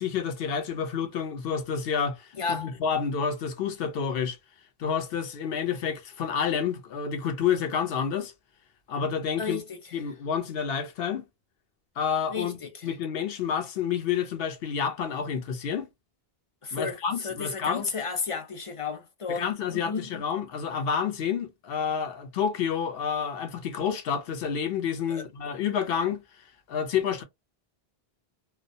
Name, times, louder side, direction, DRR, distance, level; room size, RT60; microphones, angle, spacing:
voice 1, 0.0-4.4 4.8-8.3 8.9-9.6 9.9-11.3 12.0-15.9 16.7-17.8 19.3-26.2 26.7-27.2, left 7 dB, 70° left, 0.8 m, -29 dB
voice 2, 2.4-2.7 9.4-9.8 12.3-12.9 16.6-20.1 25.1-25.3, left 5 dB, 50° left, 0.4 m, -33 dB
2.2 x 2.1 x 2.6 m
omnidirectional pair, 1.1 m